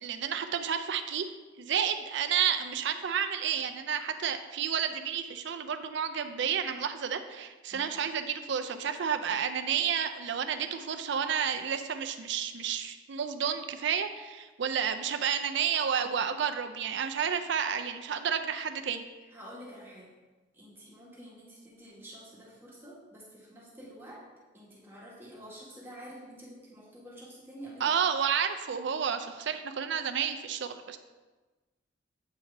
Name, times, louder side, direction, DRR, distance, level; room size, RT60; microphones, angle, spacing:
voice 1, 0.0-1.3 1.6-19.0 27.8-31.0, right 7 dB, 65° right, 8 dB, 0.5 m, -31 dB
voice 2, 19.3-20.1 20.5-24.2 24.5-28.0, equal, 10° right, -7 dB, 1.6 m, -48 dB
8.3 x 4.8 x 3.3 m, 1.2 s
head